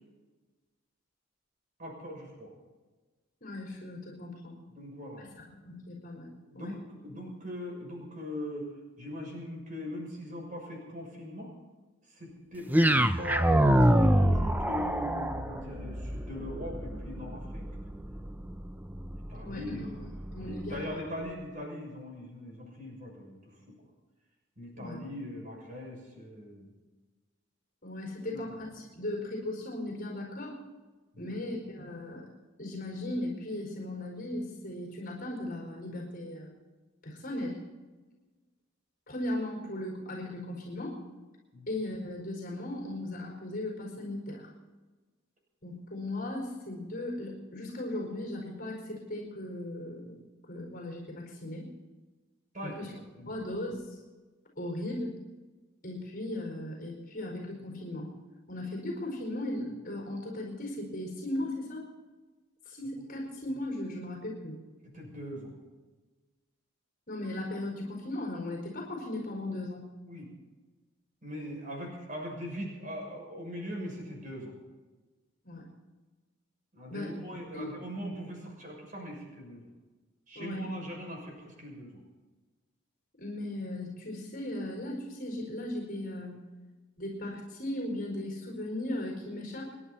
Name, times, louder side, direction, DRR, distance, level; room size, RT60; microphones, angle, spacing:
voice 1, 1.8-2.5 4.7-5.3 6.5-8.7 9.0-11.5 12.1-12.7 13.2-17.7 19.3-23.4 23.7-23.8 24.6-26.7 28.2-28.5 31.1-31.4 41.5-41.7 52.5-53.3 64.9-65.5 70.1-70.3 71.2-74.5 76.7-79.7 80.3-82.0, equal, 40° right, -1 dB, 6.5 m, -41 dB
voice 2, 3.4-4.6 5.2-6.7 19.4-19.7 20.0-20.9 24.7-25.0 27.8-30.6 31.2-32.2 32.6-36.5 37.0-37.6 39.1-41.0 41.7-44.5 45.6-50.2 50.5-51.7 52.6-52.9 53.2-54.0 54.6-55.2 55.8-58.1 58.5-61.8 62.6-64.6 67.1-69.9 75.4-75.7 76.9-77.1 77.5-77.7 80.3-80.6 83.2-86.3 87.0-89.7, left 1 dB, 40° left, 0 dB, 4.7 m, -37 dB
sound 1, 12.7-20.9, right 1 dB, 10° right, 0.6 m, -27 dB
29.5 x 11.0 x 4.2 m, 1.3 s
head